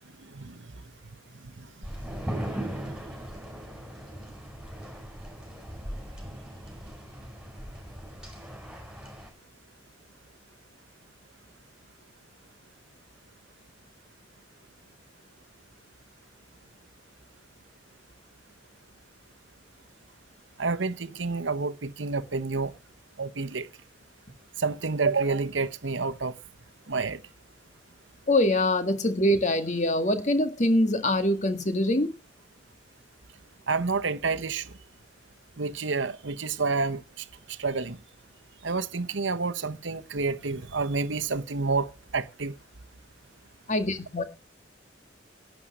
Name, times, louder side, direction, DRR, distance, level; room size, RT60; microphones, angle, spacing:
voice 1, 0.2-0.7 1.6-1.7 20.6-22.7 23.2-23.7 24.6-26.3 26.9-27.2 33.7-34.7 35.6-38.0 38.6-42.5, right 4 dB, 75° right, 1.0 m, -29 dB
sound 1, 1.8-9.3, right 1 dB, 5° right, 4.6 m, -38 dB
voice 2, 28.3-32.1 43.7-44.2, left 1 dB, 40° left, 1.8 m, -24 dB
11.5 x 8.3 x 7.3 m
head